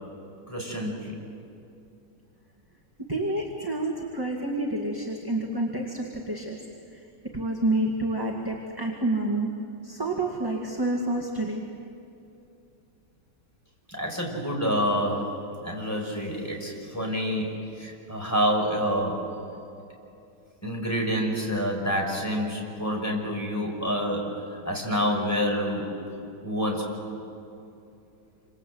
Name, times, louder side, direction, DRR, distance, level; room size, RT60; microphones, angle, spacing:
voice 1, 0.5-1.1 13.9-19.3 20.6-25.9 26.4-27.0, equal, 10° left, -1 dB, 5.7 m, -28 dB
voice 2, 3.1-6.6 6.9-7.0 7.3-9.5 9.8-11.7, right 2 dB, 10° right, 0 dB, 2.0 m, -28 dB
28.5 x 26.5 x 8.0 m, 2.7 s
omnidirectional pair, 1.9 m